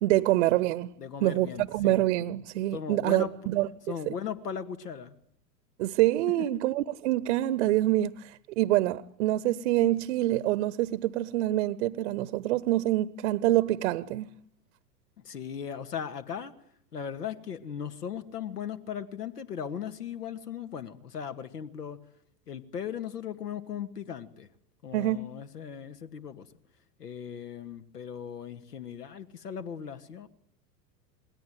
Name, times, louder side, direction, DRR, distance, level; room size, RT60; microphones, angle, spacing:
voice 1, 0.0-0.9 1.2-3.7 4.1-4.2 5.8-14.3 24.9-25.2, right 15 dB, 45° right, 1.1 m, -26 dB
voice 2, 1.0-2.0 2.7-3.3 3.9-5.2 6.3-6.5 15.2-16.5 16.9-22.0 22.5-24.5 24.8-26.5 27.0-30.3, left 8 dB, 65° left, 2.2 m, -38 dB
28.0 x 21.0 x 9.3 m
figure-of-eight pair, 95°, 50 cm